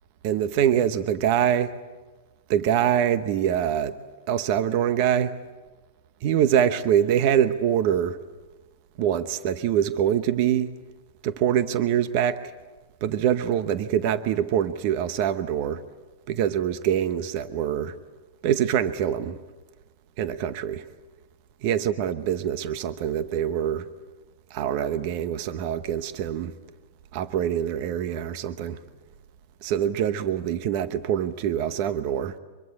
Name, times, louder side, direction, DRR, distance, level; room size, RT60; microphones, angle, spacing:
voice 1, 0.2-1.7 2.5-4.0 4.3-5.3 6.2-8.2 9.0-10.7 11.2-12.4 13.0-15.8 16.3-18.0 18.4-19.4 20.2-20.9 21.6-23.9 24.5-26.5 27.1-28.8 29.6-32.4, right 9 dB, 35° right, 0.9 m, -24 dB
24.5 x 22.5 x 8.6 m
supercardioid pair, 175°, 0 cm